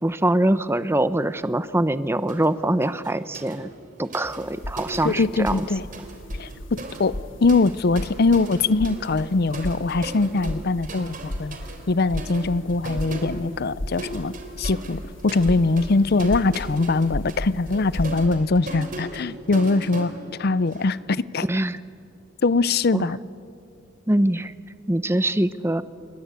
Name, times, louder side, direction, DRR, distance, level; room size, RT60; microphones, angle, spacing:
voice 1, 0.0-3.7 4.0-5.7 21.4-21.8 22.9-23.1 24.1-24.5 24.9-25.8, right 1 dB, 15° right, 14 dB, 0.7 m, -23 dB
sound 1, 2.3-2.5 2.8-5.7 5.9-20.9, right 2 dB, 45° right, 3.6 m, -38 dB
sound 2, 4.2-18.3, equal, 80° left, 1.7 m, -36 dB
voice 2, 5.0-5.8 6.4-11.6 11.9-20.1 20.4-21.5 22.4-23.2, left 3 dB, 55° left, 18 dB, 0.6 m, -22 dB
28.0 x 22.0 x 8.4 m, 2.5 s
head